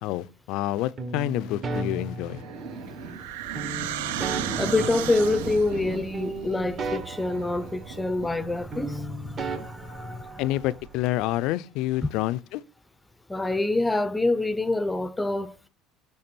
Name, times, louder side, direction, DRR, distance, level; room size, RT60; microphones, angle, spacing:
voice 1, 0.0-2.4 10.4-12.6, left 15 dB, 70° left, 0.3 m, -28 dB
sound 1, 1.0-3.0 3.6-5.9 6.1-8.5 8.7-10.8, right 3 dB, 35° right, 1.1 m, -36 dB
sound 2, 1.1-11.5, right 4 dB, 70° right, 2.9 m, -39 dB
sound 3, 2.4-5.8, right 13 dB, 90° right, 0.4 m, -34 dB
voice 2, 4.5-10.4 12.0-12.1 13.3-15.6, left 2 dB, 10° left, 0.5 m, -26 dB
6.6 x 3.3 x 4.3 m
supercardioid pair, 95°, 0 cm